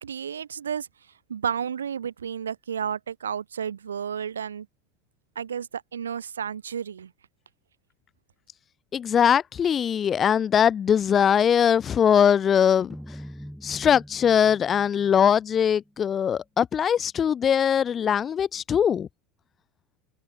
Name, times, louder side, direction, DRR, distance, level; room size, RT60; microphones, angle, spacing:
voice 1, 0.0-0.9 1.3-4.7 5.4-7.1, right 8 dB, 90° right, 1.9 m, -32 dB
voice 2, 8.9-12.9 13.6-19.1, left 8 dB, 35° left, 0.9 m, -21 dB
sound 1, 12.9-16.1, equal, ahead, 6.2 m, -44 dB
hypercardioid pair, 80°, 0 cm